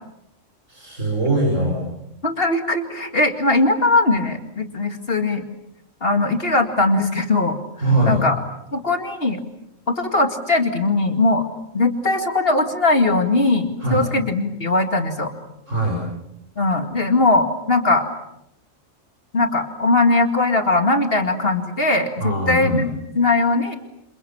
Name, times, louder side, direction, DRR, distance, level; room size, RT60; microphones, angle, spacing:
voice 1, 0.7-1.8 7.8-8.2 13.8-14.0 15.7-16.0 22.2-22.8, right 1 dB, 75° right, -1 dB, 6.5 m, -21 dB
voice 2, 2.2-5.4 6.0-7.6 8.1-8.3 8.7-9.4 9.9-11.4 11.7-15.3 16.6-18.1 19.3-22.9 23.2-23.7, left 2 dB, 50° left, 6 dB, 2.4 m, -20 dB
30.0 x 27.0 x 7.2 m, 0.85 s
omnidirectional pair, 1.3 m